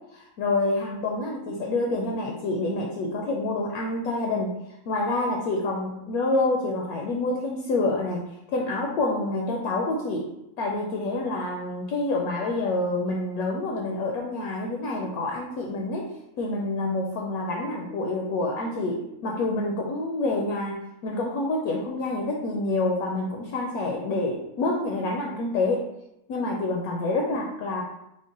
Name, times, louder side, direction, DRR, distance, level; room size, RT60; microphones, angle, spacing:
voice 1, 0.1-4.6 4.9-10.3 10.6-16.1 16.4-25.9 26.3-27.8, left 2 dB, 75° left, -1 dB, 1.0 m, -27 dB
3.7 x 2.2 x 3.6 m, 0.84 s
omnidirectional pair, 1.6 m